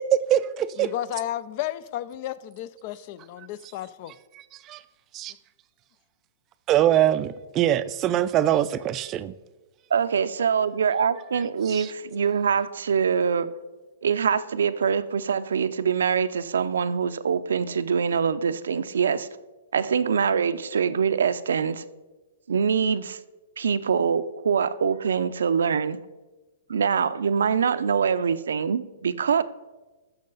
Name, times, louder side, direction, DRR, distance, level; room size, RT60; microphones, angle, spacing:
voice 1, 0.0-0.9 4.7-4.8 5.1-5.3 6.7-9.3 11.7-11.9, right 12 dB, 30° right, 14 dB, 0.4 m, -23 dB
voice 2, 0.8-4.1, left 13 dB, 45° left, 17 dB, 0.4 m, -33 dB
voice 3, 9.9-13.5 14.0-19.3 19.7-21.8 22.5-23.2 23.6-26.0 26.7-29.4, right 6 dB, 85° right, 13 dB, 0.5 m, -24 dB
14.5 x 6.6 x 4.0 m, 1.2 s
hypercardioid pair, 140°, 0 cm